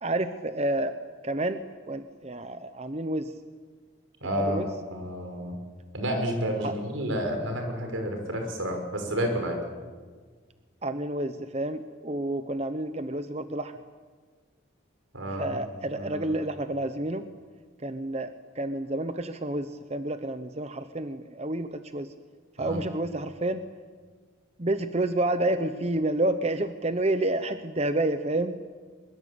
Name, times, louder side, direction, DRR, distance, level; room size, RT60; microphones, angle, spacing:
voice 1, 0.0-1.0 1.2-3.3 4.4-4.7 6.6-6.7 10.8-13.7 15.4-17.3 17.8-22.1 22.6-23.7 24.6-28.6, right 1 dB, 30° right, 10 dB, 0.9 m, -29 dB
voice 2, 4.2-5.6 5.9-9.6 15.1-15.6 15.9-16.3 22.6-22.8, equal, 85° right, 4 dB, 5.9 m, -30 dB
23.0 x 23.0 x 8.6 m, 1.5 s
head